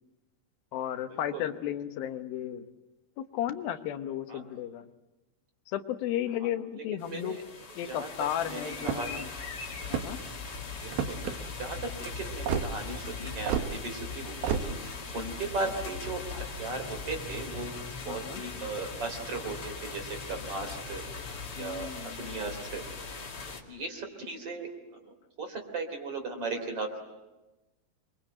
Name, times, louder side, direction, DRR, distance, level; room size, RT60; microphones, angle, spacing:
voice 1, 0.7-2.7 3.2-4.9 5.7-7.4 7.8-9.3 9.9-10.2 18.1-18.4 21.6-22.2, left 11 dB, 85° left, 9 dB, 2.9 m, -34 dB
sound 1, 7.0-23.6, left 4 dB, 40° left, 3.2 m, -40 dB
voice 2, 7.1-7.4 7.9-8.1 8.4-9.2 10.8-17.8 18.1-21.0 21.6-22.8 23.6-24.7 25.4-27.0, right 3 dB, 40° right, 5 dB, 4.2 m, -37 dB
sound 2, 8.8-9.2 9.8-10.3 10.9-11.3 12.5-12.7 13.5-13.7 14.4-14.7, right 8 dB, 90° right, 3.2 m, -30 dB
27.5 x 23.0 x 7.9 m, 1.1 s
omnidirectional pair, 4.1 m